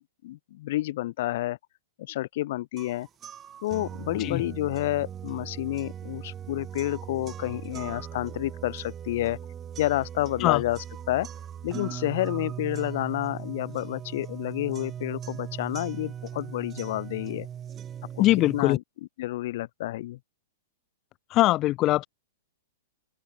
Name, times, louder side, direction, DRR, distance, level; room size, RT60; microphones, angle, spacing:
voice 1, 0.2-1.6 2.0-3.1 3.6-9.4 9.8-11.3 11.6-17.5 18.1-18.2 18.5-18.8 19.2-20.2, left 16 dB, 60° left, 7.7 m, -29 dB
sound 1, 2.8-18.8, right 9 dB, 25° right, 4.2 m, -39 dB
voice 2, 18.2-18.8 21.3-22.1, left 16 dB, 35° left, 2.8 m, -22 dB
open air
hypercardioid pair, 125°, 0 cm